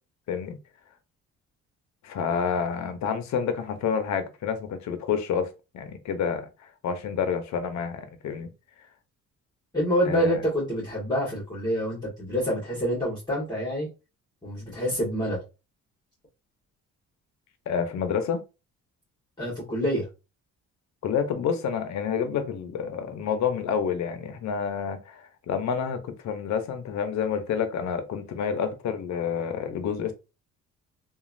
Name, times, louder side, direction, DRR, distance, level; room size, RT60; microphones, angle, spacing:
voice 1, 2.0-8.5 10.0-10.4 17.7-18.4 21.0-30.1, left 7 dB, 65° left, 0.7 m, -29 dB
voice 2, 9.7-13.9 14.4-15.4 19.4-20.1, equal, 15° left, 1.5 m, -27 dB
3.0 x 2.4 x 2.5 m
cardioid pair, 90°, 30 cm